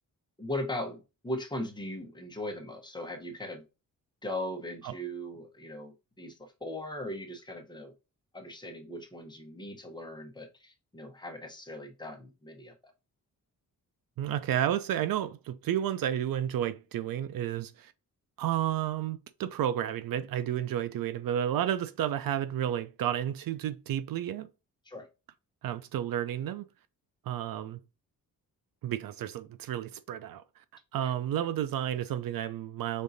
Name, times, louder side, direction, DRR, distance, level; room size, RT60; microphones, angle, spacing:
voice 1, 0.4-3.6 4.2-7.9 8.3-12.7 24.8-25.1 31.0-31.1, left 1 dB, 10° left, 0.9 m, -39 dB
voice 2, 14.2-17.9 18.4-24.5 25.6-26.6 27.3-27.8 28.8-30.4 30.9-33.0, right 11 dB, 75° right, 0.5 m, -31 dB
5.3 x 3.7 x 2.7 m
wide cardioid pair, 140°, 35 cm